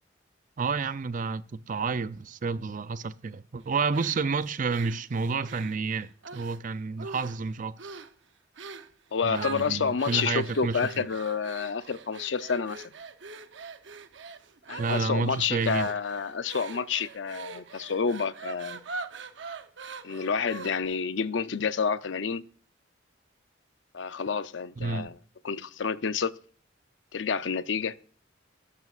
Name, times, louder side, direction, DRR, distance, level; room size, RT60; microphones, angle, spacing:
voice 1, 0.6-7.8 9.2-11.1 14.8-15.9 24.8-25.1, right 4 dB, 45° right, 0.5 m, -30 dB
sound 1, 3.9-6.6 7.0-7.5 7.8-8.1 8.6-8.9 9.3-21.0, right 4 dB, 70° right, 0.8 m, -43 dB
voice 2, 9.1-12.9 14.7-18.8 20.0-22.4 23.9-25.2 25.4-26.3 27.1-28.0, left 5 dB, 70° left, 0.6 m, -29 dB
12.5 x 12.0 x 2.4 m
head